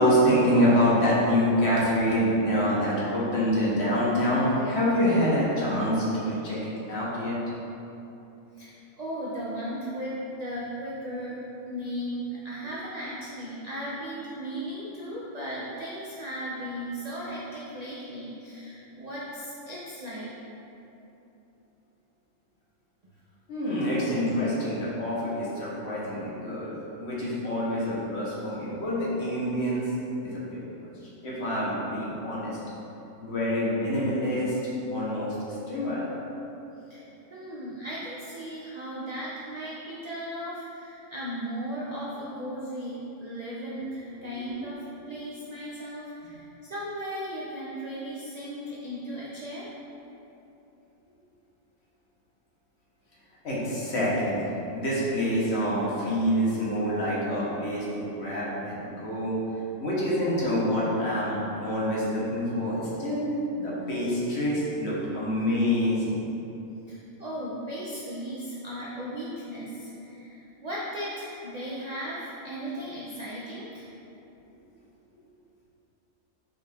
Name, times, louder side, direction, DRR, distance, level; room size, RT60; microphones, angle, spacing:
voice 1, 0.0-7.4 23.5-26.7 27.0-29.9 30.2-30.8 31.2-32.6 33.2-34.6 34.9-35.3 35.7-36.0 53.4-59.4 59.8-66.2, equal, 60° left, -7 dB, 1.1 m, -26 dB
voice 2, 9.0-11.4 11.7-20.3 36.9-37.0 37.3-49.7 66.9-73.9, equal, 55° right, -7 dB, 0.4 m, -36 dB
5.3 x 2.4 x 3.4 m, 2.9 s
omnidirectional pair, 1.4 m